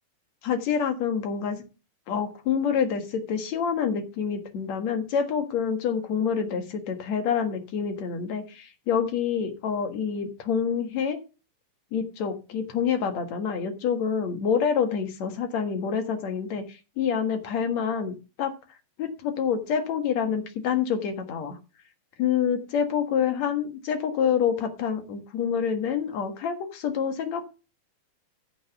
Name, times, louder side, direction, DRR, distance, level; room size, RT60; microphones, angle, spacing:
voice 1, 0.4-1.6 2.1-11.2 11.9-16.6 17.0-18.5 19.0-21.6 22.2-27.4, left 7 dB, 55° left, 7 dB, 2.6 m, -27 dB
15.0 x 5.3 x 5.9 m, 0.32 s
omnidirectional pair, 4.0 m